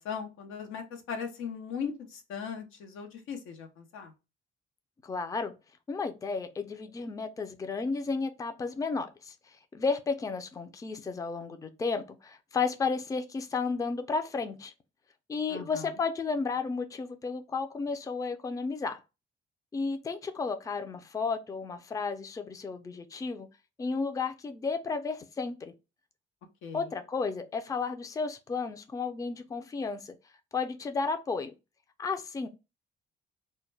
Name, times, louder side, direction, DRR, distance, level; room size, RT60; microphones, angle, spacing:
voice 1, 0.0-4.1 15.5-15.9 26.6-26.8, left 6 dB, 90° left, 0.6 m, -38 dB
voice 2, 5.0-5.5 5.9-9.3 9.7-14.7 15.3-19.0 19.7-23.5 23.8-25.7 26.7-30.1 30.5-31.5 32.0-32.5, left 4 dB, 15° left, 0.3 m, -33 dB
2.2 x 2.1 x 3.1 m
cardioid pair, 90°, 20 cm